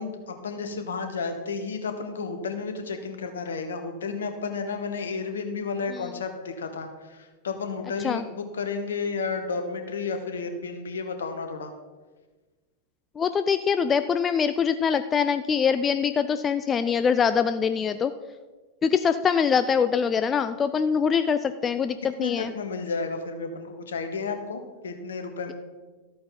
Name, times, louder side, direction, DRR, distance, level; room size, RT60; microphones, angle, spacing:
voice 1, 0.0-11.7 22.2-25.5, left 4 dB, 65° left, 7 dB, 1.3 m, -32 dB
voice 2, 13.2-18.1 18.8-22.5, left 6 dB, 20° left, 11 dB, 0.4 m, -23 dB
13.5 x 8.5 x 3.9 m, 1.3 s
figure-of-eight pair, 90°, 0 cm